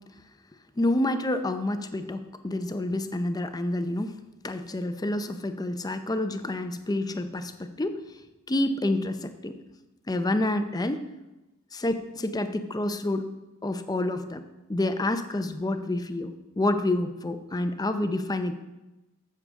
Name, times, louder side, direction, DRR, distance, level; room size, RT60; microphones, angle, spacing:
voice 1, 0.8-4.2 4.4-8.0 8.5-9.6 10.1-11.1 11.7-13.3 13.6-14.4 14.7-18.5, left 1 dB, 15° left, 9 dB, 0.6 m, -28 dB
15.0 x 6.6 x 3.6 m, 1.0 s
head